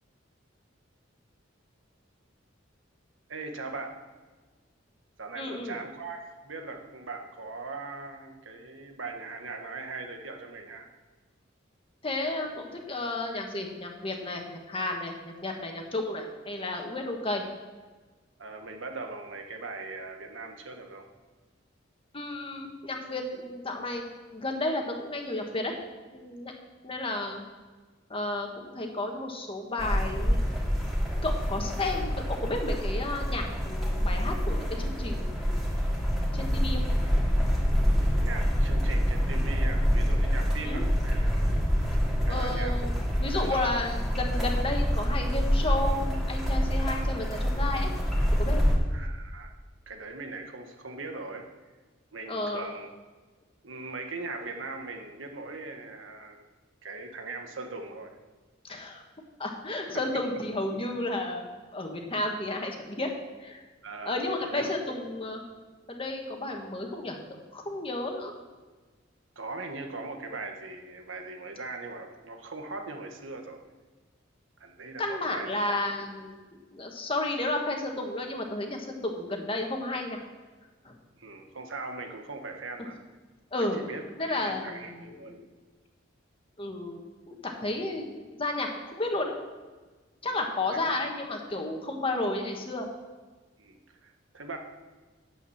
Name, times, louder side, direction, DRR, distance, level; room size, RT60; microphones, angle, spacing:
voice 1, 3.3-4.1 5.2-10.9 18.4-21.1 38.2-41.4 42.3-42.9 43.4-43.8 48.9-49.5 49.9-51.5 52.1-52.9 53.6-56.4 56.8-58.2 63.8-64.7 69.3-73.6 74.6-75.5 81.2-83.0 83.6-85.3 90.2-90.5 90.7-91.0 93.6-94.6, right 3 dB, 85° right, 4 dB, 1.5 m, -40 dB
voice 2, 5.3-5.8 12.0-17.4 22.1-24.0 24.3-25.8 26.1-26.5 26.8-27.4 28.1-28.5 28.7-30.4 31.2-35.7 36.3-36.8 40.6-40.8 42.3-47.9 48.3-48.7 52.3-52.7 58.6-59.0 59.4-61.4 61.7-63.1 63.4-63.6 64.0-65.4 65.9-67.2 67.5-68.3 75.0-76.3 76.7-80.2 80.8-80.9 83.5-83.8 84.2-85.4 86.6-89.4 90.2-92.9, left 2 dB, 30° left, 2 dB, 1.6 m, -32 dB
sound 1, 29.8-48.8, equal, ahead, 2.6 m, -26 dB
9.5 x 7.9 x 7.2 m, 1.3 s
head